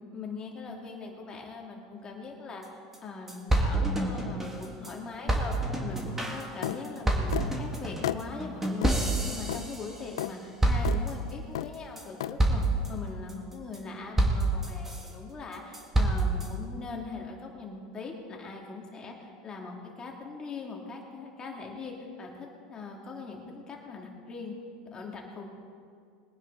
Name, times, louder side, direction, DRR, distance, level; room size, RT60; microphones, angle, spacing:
voice 1, 0.1-5.6 5.8-12.6 12.9-24.5 24.9-25.4, left 4 dB, 30° left, 0 dB, 2.7 m, -41 dB
sound 1, 2.6-2.7 2.9-3.0 3.3-4.9 5.3-10.3 10.6-11.3 11.7-12.0 12.4-12.9 13.3-13.8 14.2-15.1 15.5-16.5, right 2 dB, 15° right, 2.2 m, -28 dB
sound 2, 6.6-6.8 7.3-7.5 8.0-8.2 8.8-9.0 9.5-9.7 10.2-10.3 10.8-11.0 11.5-11.7 12.2-12.4, left 13 dB, 85° left, 0.4 m, -32 dB
21.0 x 9.9 x 4.1 m, 2.3 s
supercardioid pair, 105°, 3 cm